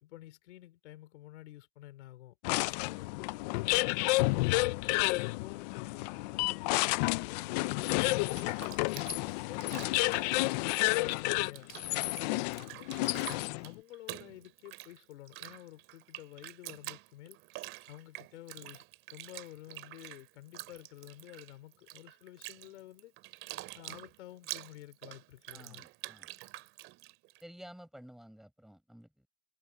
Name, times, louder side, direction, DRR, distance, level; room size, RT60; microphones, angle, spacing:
voice 1, 0.0-9.0 9.5-13.2 13.6-17.4 17.9-18.8 19.1-23.1 23.7-25.8, left 15 dB, 70° left, 3.7 m, -51 dB
sound 1, 2.4-13.7, left 22 dB, 35° left, 0.5 m, -30 dB
Bathtub (filling or washing), 8.1-11.2 11.4-27.4, right 18 dB, 35° right, 2.8 m, -47 dB
voice 2, 25.5-26.3 27.4-29.3, equal, ahead, 7.8 m, -53 dB
supercardioid pair, 155°, 36 cm